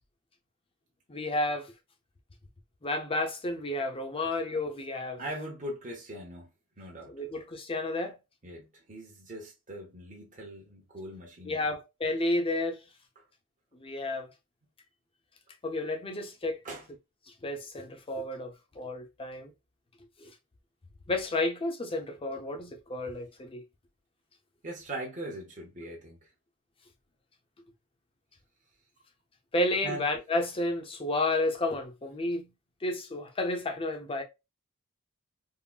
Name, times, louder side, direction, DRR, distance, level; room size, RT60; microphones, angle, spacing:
voice 1, 1.1-1.7 2.8-5.2 7.1-8.1 11.5-12.8 13.8-14.3 15.6-16.6 17.4-19.5 20.2-20.3 21.1-23.6 29.5-32.5 32.8-34.2, left 2 dB, 25° left, 0.6 m, -31 dB
voice 2, 5.2-6.5 6.8-7.1 8.4-11.7 16.6-16.9 24.6-26.2 29.8-30.0, right 1 dB, 35° right, 0.9 m, -40 dB
3.6 x 2.0 x 2.2 m
head